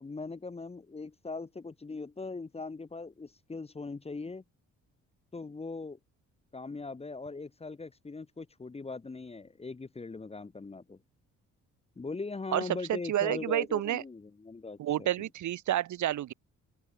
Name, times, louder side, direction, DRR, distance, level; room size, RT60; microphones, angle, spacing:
voice 1, 0.0-4.4 5.3-6.0 6.5-11.0 12.0-14.8 15.2-15.3, left 3 dB, 20° left, 1.1 m, -40 dB
voice 2, 12.5-14.0 14.8-16.3, right 12 dB, 70° right, 1.8 m, -30 dB
open air
cardioid pair, 90°, 30 cm